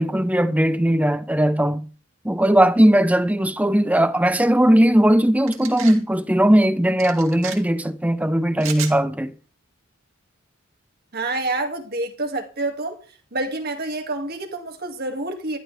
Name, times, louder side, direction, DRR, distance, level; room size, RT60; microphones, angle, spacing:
voice 1, 0.0-1.8 2.2-9.3, right 1 dB, 5° right, 0.8 m, -18 dB
sound 1, 5.5-6.0 7.0-7.6 8.6-9.0, right 9 dB, 75° right, 2.9 m, -33 dB
voice 2, 11.1-13.0 13.3-15.6, right 2 dB, 50° right, 2.2 m, -27 dB
14.0 x 12.5 x 3.4 m
head